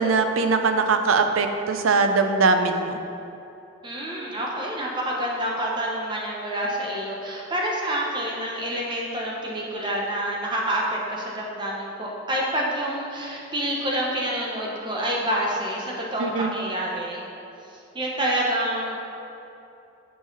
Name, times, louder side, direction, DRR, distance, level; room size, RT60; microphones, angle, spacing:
voice 1, 0.0-3.0 16.2-16.5, right 4 dB, 90° right, 7 dB, 0.5 m, -21 dB
voice 2, 3.8-17.3 17.9-19.0, right 1 dB, 25° right, -3 dB, 0.9 m, -27 dB
7.6 x 5.7 x 4.0 m, 2.8 s
head